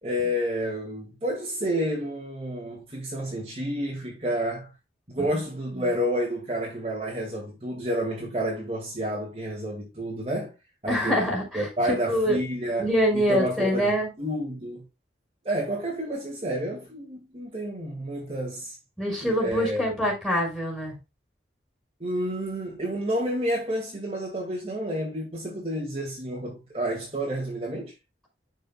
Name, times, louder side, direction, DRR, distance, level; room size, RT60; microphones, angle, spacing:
voice 1, 0.0-4.7 5.1-10.5 10.8-11.2 11.5-12.9 13.1-14.8 15.4-18.8 19.2-19.8 22.0-27.9, equal, 35° right, 2.2 m, -30 dB
voice 2, 10.9-12.4 12.8-14.1 19.0-21.0, equal, ahead, 5.1 m, -25 dB
11.5 x 5.3 x 2.3 m
head